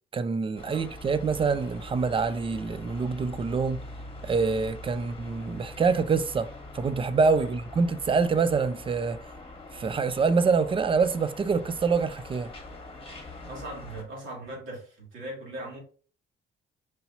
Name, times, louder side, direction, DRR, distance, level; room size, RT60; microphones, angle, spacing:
voice 1, 0.1-3.8 4.2-9.3 9.7-12.5, right 4 dB, 25° right, 0.4 m, -26 dB
sound 1, 0.6-14.0, left 1 dB, 25° left, 1.2 m, -43 dB
voice 2, 13.5-15.8, right 1 dB, 80° right, 2.1 m, -40 dB
4.7 x 2.8 x 2.7 m
cardioid pair, 90°, 20 cm